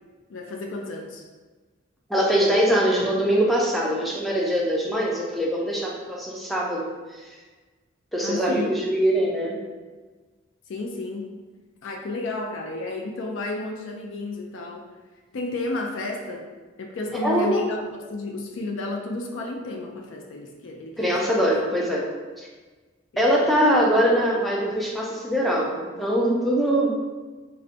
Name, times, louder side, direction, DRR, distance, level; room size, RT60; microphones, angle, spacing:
voice 1, 0.3-1.2 8.2-8.8 10.7-11.3 11.8-14.8 15.3-16.5 16.8-21.6, left 2 dB, 70° left, 1 dB, 0.4 m, -32 dB
voice 2, 2.1-7.2 8.1-9.6 17.2-17.6 21.0-22.0 22.4-22.5 23.2-27.0, equal, ahead, -4 dB, 0.4 m, -22 dB
3.9 x 2.1 x 2.5 m, 1.3 s
head